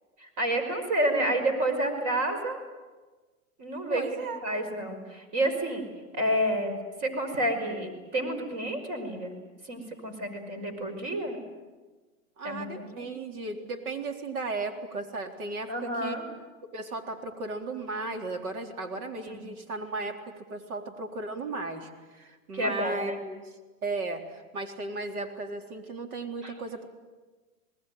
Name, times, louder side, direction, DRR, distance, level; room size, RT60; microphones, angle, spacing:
voice 1, 0.2-2.6 3.6-4.0 4.4-5.9 6.1-9.4 9.6-11.4 12.4-13.1 15.7-16.3 19.2-19.5 22.5-23.2 26.4-26.5, right 1 dB, 40° right, 7 dB, 5.5 m, -30 dB
voice 2, 3.9-4.4 12.4-16.2 16.6-23.5 23.8-26.8, right 3 dB, 80° right, 4 dB, 3.9 m, -35 dB
27.5 x 20.0 x 9.3 m, 1.3 s
hypercardioid pair, 130°, 43 cm